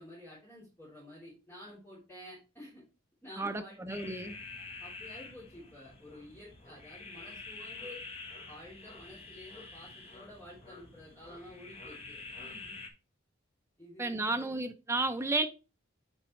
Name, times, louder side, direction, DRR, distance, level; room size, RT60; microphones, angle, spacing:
voice 1, 0.0-2.8 3.2-4.4 4.8-8.0 8.5-12.8 13.8-14.5, left 1 dB, 10° left, 3.2 m, -51 dB
voice 2, 3.4-4.4 14.0-15.5, right 2 dB, 10° right, 0.5 m, -32 dB
sound 1, 3.9-12.9, left 3 dB, 30° left, 1.1 m, -47 dB
8.6 x 5.1 x 3.1 m
head